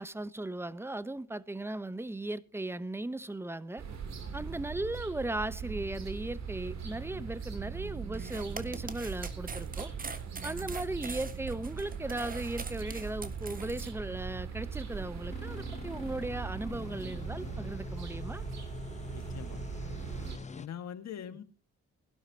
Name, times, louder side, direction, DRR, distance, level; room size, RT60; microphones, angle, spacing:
voice 1, 0.0-3.8 4.3-9.9 10.4-18.4, right 2 dB, 10° right, 0.8 m, -37 dB
sound 1, 3.8-20.4, right 6 dB, 60° right, 3.1 m, -40 dB
sound 2, 8.1-13.9, right 4 dB, 30° right, 1.5 m, -43 dB
sound 3, 15.3-20.7, left 4 dB, 25° left, 0.8 m, -44 dB
voice 2, 19.1-19.6 20.6-21.4, left 9 dB, 60° left, 1.7 m, -42 dB
20.5 x 12.0 x 2.8 m
cardioid pair, 90°, 30 cm